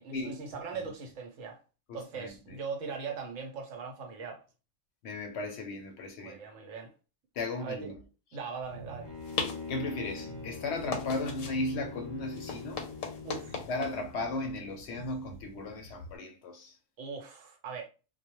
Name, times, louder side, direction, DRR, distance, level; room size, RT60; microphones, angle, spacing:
voice 1, 0.0-1.6 1.9-4.4 6.2-6.9 7.6-7.9 8.3-9.1 13.2-13.6 17.0-17.9, right 5 dB, 75° right, 1.0 m, -40 dB
voice 2, 1.9-2.6 5.0-6.4 7.3-8.0 9.7-12.8 13.7-16.8, left 2 dB, 65° left, 0.8 m, -36 dB
sound 1, 8.6-16.2, left 4 dB, 90° left, 1.0 m, -41 dB
Bowed string instrument, 9.0-13.8, left 4 dB, 35° left, 0.4 m, -43 dB
2.3 x 2.1 x 2.9 m
omnidirectional pair, 1.3 m